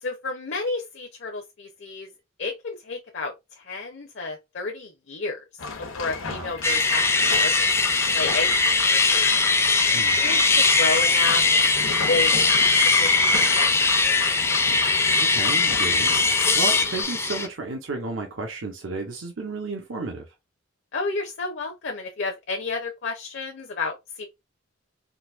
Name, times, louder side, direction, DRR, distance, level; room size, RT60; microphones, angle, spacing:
voice 1, 0.0-2.1 2.4-5.4 5.9-8.5 8.9-9.4 10.1-12.7 13.0-14.2 20.9-24.3, left 3 dB, 60° left, 0.6 m, -31 dB
sound 1, 5.6-17.0, left 4 dB, 85° left, 0.9 m, -34 dB
sound 2, 6.6-17.5, left 3 dB, 15° left, 0.4 m, -20 dB
voice 2, 14.8-20.2, right 3 dB, 75° right, 0.7 m, -33 dB
3.9 x 2.6 x 2.3 m
head